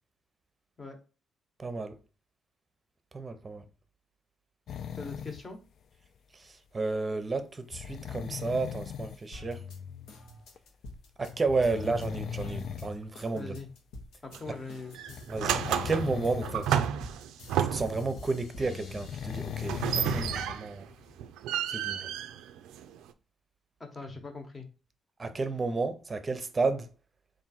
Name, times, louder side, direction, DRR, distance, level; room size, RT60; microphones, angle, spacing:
voice 1, 1.6-1.9 3.1-3.6 6.3-9.6 11.2-13.6 14.5-14.6 15.3-16.9 17.7-20.9 21.7-22.1 25.2-26.9, right 3 dB, 30° right, 0.6 m, -32 dB
sound 1, 4.7-5.4 7.7-9.2 10.6-10.7 11.5-12.9 13.6-13.7 15.1-16.8 17.1-17.2 18.8-20.6 21.1-21.2, left 9 dB, 65° left, 0.3 m, -38 dB
voice 2, 4.9-5.6 11.7-11.9 13.3-13.7 14.2-15.2 23.8-24.7, left 3 dB, 30° left, 1.0 m, -41 dB
sound 2, 9.3-14.4 14.7-19.9 20.4-21.3, left 4 dB, 85° left, 1.0 m, -46 dB
sound 3, 14.3-14.6 14.9-18.1 19.6-20.8 21.2-23.1, right 10 dB, 90° right, 0.3 m, -31 dB
3.6 x 2.6 x 4.2 m
cardioid pair, 90°, 0 cm